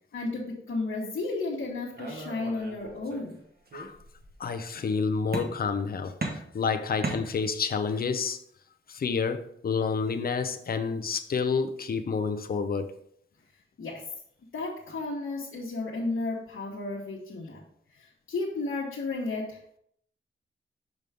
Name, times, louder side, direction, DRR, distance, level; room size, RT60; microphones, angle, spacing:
voice 1, 0.1-3.4 13.8-14.0 14.5-17.6 17.9-19.8, left 3 dB, 70° left, 1.2 m, -33 dB
sound 1, 2.0-3.3 3.7-4.4 5.3-5.8 6.2-7.8, right 2 dB, 50° right, 1.2 m, -37 dB
voice 2, 4.4-8.4 8.9-12.9, left 5 dB, 45° left, 0.5 m, -29 dB
6.2 x 5.3 x 3.4 m
wide cardioid pair, 165°, 21 cm